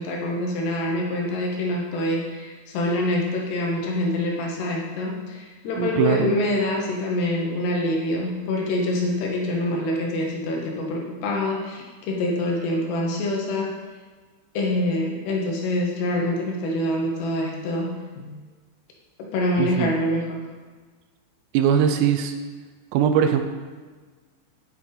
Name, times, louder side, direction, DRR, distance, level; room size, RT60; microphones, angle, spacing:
voice 1, 0.0-13.8 14.5-18.4 19.2-20.4, left 1 dB, 70° left, -1 dB, 2.9 m, -25 dB
voice 2, 5.8-6.3 19.6-19.9 21.5-22.3 22.9-23.4, right 8 dB, 85° right, 7 dB, 3.3 m, -21 dB
9.9 x 8.0 x 4.0 m, 1.4 s
omnidirectional pair, 5.7 m